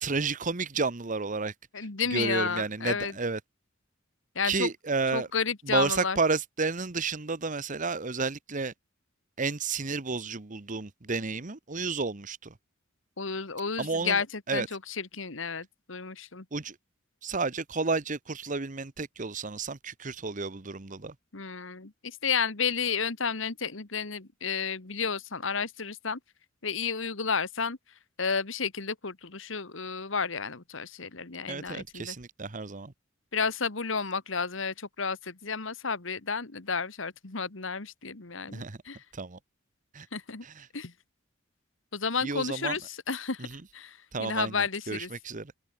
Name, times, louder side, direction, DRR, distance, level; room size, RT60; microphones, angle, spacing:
voice 1, 0.0-1.5 2.1-3.4 4.4-5.3 5.7-8.7 9.4-12.5 13.8-14.2 14.5-14.7 16.5-16.8 17.2-21.1 31.5-32.9 38.5-38.8 39.1-39.4 39.9-40.1 40.4-40.7 42.2-42.7 43.4-43.6 44.1-45.5, right 4 dB, 40° right, 1.1 m, -31 dB
voice 2, 1.7-3.1 4.4-4.7 5.1-6.2 13.2-16.5 21.3-26.2 26.6-27.8 28.2-32.2 33.3-39.0 40.1-40.5 40.7-40.9 41.9-45.1, left 5 dB, 70° left, 1.7 m, -32 dB
head